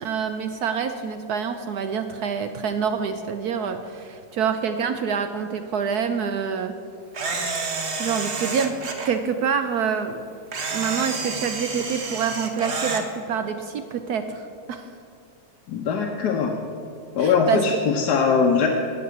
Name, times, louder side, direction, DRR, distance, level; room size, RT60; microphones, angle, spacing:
voice 1, 0.0-6.7 8.0-8.8 9.0-10.2 10.7-14.9 17.2-17.8, right 6 dB, 70° right, 8 dB, 1.0 m, -26 dB
Camera, 7.1-9.1 10.5-13.0, right 4 dB, 40° right, 1.1 m, -29 dB
voice 2, 15.7-16.5 17.1-18.7, left 5 dB, 60° left, 1 dB, 1.3 m, -21 dB
12.0 x 6.7 x 9.3 m, 2.5 s
omnidirectional pair, 2.1 m